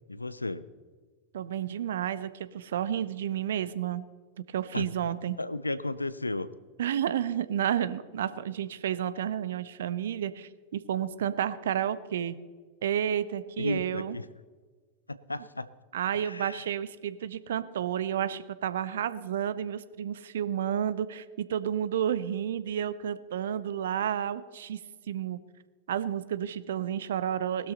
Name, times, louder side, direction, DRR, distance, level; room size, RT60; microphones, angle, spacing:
voice 1, 0.1-0.7 4.7-4.9 5.4-6.5 13.6-14.2 15.1-15.7 16.1-16.7, left 2 dB, 80° left, 16 dB, 0.6 m, -34 dB
voice 2, 1.3-4.1 4.5-5.4 6.8-12.4 12.8-14.2 15.9-24.8 25.1-25.4 25.9-27.7, right 10 dB, 60° right, 15 dB, 0.7 m, -31 dB
19.0 x 12.5 x 4.1 m, 1.4 s
figure-of-eight pair, 90°, 0 cm